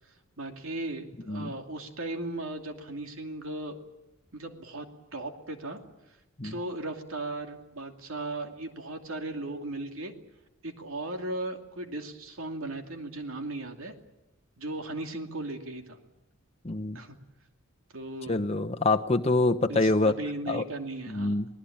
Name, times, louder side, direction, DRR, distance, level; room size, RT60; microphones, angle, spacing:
voice 1, 0.4-3.8 4.3-5.8 6.4-10.1 10.6-13.9 14.6-16.0 16.9-17.2 17.9-18.4 19.7-21.4, right 2 dB, 75° right, 5 dB, 2.7 m, -37 dB
voice 2, 16.6-17.0 18.3-20.1 20.5-20.6 21.1-21.5, left 2 dB, 30° left, 5 dB, 0.9 m, -25 dB
28.0 x 19.0 x 8.7 m, 0.92 s
head